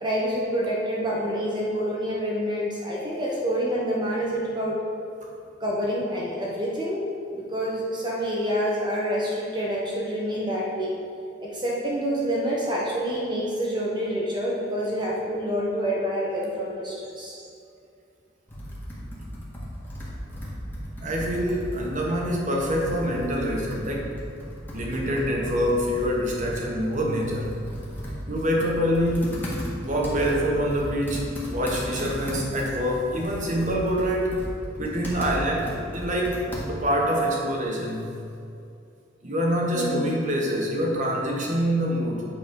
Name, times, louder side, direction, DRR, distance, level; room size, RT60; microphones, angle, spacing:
voice 1, 0.0-4.8 5.6-10.9 11.4-17.4 39.7-40.1, equal, 25° right, -5 dB, 0.9 m, -27 dB
Computer keyboard, 18.5-37.0, equal, 10° left, 1.6 m, -36 dB
voice 2, 21.0-24.1 24.7-27.5 28.3-29.5 29.8-34.5 34.8-38.2 39.2-42.3, equal, 40° right, -1 dB, 1.2 m, -25 dB
8.5 x 4.1 x 5.2 m, 2.5 s
head